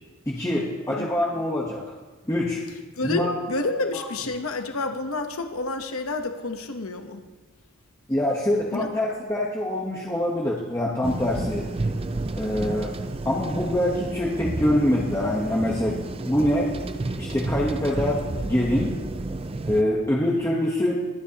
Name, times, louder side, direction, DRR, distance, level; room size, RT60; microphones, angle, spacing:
voice 1, 0.3-1.8 2.2-2.6 3.0-3.3 3.9-4.0 8.1-11.7 12.4-12.9 13.2-16.0 16.3-16.8 17.2-19.0 19.7-21.1, left 1 dB, 15° left, -4 dB, 1.0 m, -24 dB
voice 2, 3.0-7.2 8.7-8.9, left 2 dB, 75° left, 6 dB, 1.0 m, -29 dB
sound 1, 11.0-19.8, right 2 dB, 25° right, 0.5 m, -31 dB
22.5 x 9.3 x 2.9 m, 1.3 s
head